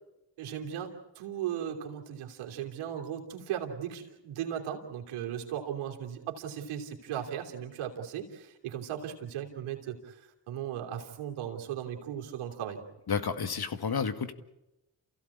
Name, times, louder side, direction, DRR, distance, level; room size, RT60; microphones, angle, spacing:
voice 1, 0.4-12.8, right 9 dB, 80° right, 2 dB, 3.2 m, -37 dB
voice 2, 13.1-14.3, left 6 dB, 50° left, 9 dB, 2.1 m, -31 dB
29.0 x 16.0 x 8.5 m, 0.94 s
hypercardioid pair, 40°, 50 cm